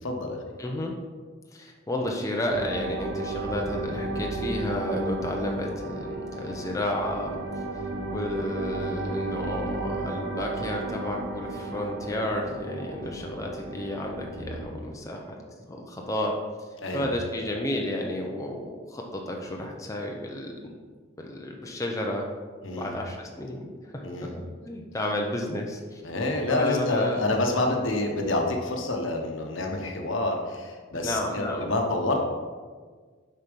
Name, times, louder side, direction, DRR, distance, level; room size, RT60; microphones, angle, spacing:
voice 1, 0.0-0.4 13.0-13.1 16.8-17.1 22.6-22.9 24.0-24.3 26.0-32.2, left 2 dB, 70° left, 2 dB, 1.1 m, -28 dB
voice 2, 0.6-0.9 1.5-7.4 7.7-15.4 15.7-16.3 16.9-20.7 21.2-22.3 22.8-24.1 24.7-26.0 26.5-27.2 30.9-31.7, left 1 dB, 15° left, 0 dB, 0.6 m, -32 dB
sound 1, 2.5-14.7, right 2 dB, 55° right, 0.9 m, -33 dB
6.9 x 4.3 x 5.3 m, 1.5 s
head